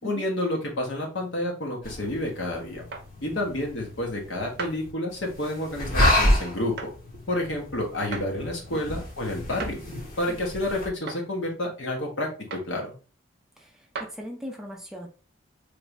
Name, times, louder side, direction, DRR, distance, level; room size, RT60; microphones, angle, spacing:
voice 1, 0.0-2.8 3.2-6.9 7.3-9.8 10.2-12.3 12.7-12.9, left 1 dB, 70° left, 0 dB, 1.1 m, -29 dB
sound 1, 1.8-10.9, left 1 dB, 50° left, 1.6 m, -29 dB
sound 2, 2.9-3.1 4.6-4.8 6.8-6.9 8.1-8.3 9.6-9.8 11.1-11.2 12.5-12.7 13.9-14.1, right 4 dB, 60° right, 0.6 m, -35 dB
voice 2, 13.6-15.1, equal, 5° right, 0 dB, 0.5 m, -39 dB
3.2 x 2.6 x 3.1 m, 0.36 s
head